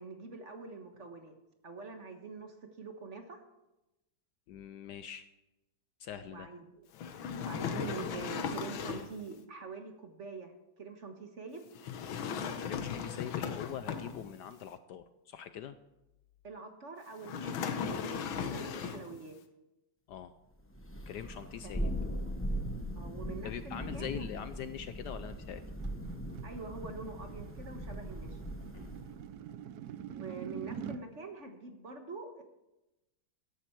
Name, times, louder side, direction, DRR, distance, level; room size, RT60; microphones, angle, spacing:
voice 1, 0.0-1.3 1.6-3.4 6.3-6.9 7.4-11.6 16.4-19.4 21.6-21.7 22.9-24.1 26.4-28.4 30.1-32.4, right 4 dB, 40° right, 5 dB, 1.4 m, -45 dB
voice 2, 4.5-5.3 6.0-6.5 12.6-15.8 20.1-20.3 21.1-21.9 23.4-25.7 28.7-28.9, left 9 dB, 70° left, 12 dB, 1.1 m, -43 dB
sound 1, 6.9-9.2 11.8-14.5 17.2-19.2, left 7 dB, 90° left, 1.8 m, -37 dB
Thunder, 20.7-29.2, equal, 10° left, 0.6 m, -39 dB
sound 2, 25.1-31.1, right 9 dB, 70° right, 0.9 m, -46 dB
14.0 x 11.0 x 4.5 m, 0.96 s
omnidirectional pair, 2.1 m